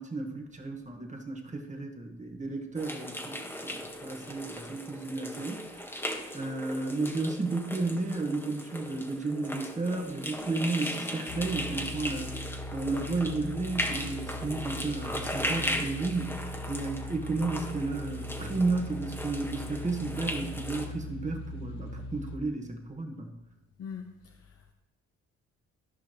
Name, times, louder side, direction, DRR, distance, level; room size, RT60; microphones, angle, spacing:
voice 1, 0.0-5.9 6.3-12.3 12.7-23.3, right 3 dB, 25° right, 3 dB, 1.7 m, -33 dB
sound 1, 2.8-20.9, equal, 5° left, 1.5 m, -38 dB
sound 2, 11.3-22.4, left 1 dB, 75° left, 1.1 m, -40 dB
voice 2, 23.8-24.7, left 6 dB, 50° left, 4 dB, 0.8 m, -43 dB
14.0 x 5.6 x 3.2 m, 0.93 s
cardioid pair, 90°, 30 cm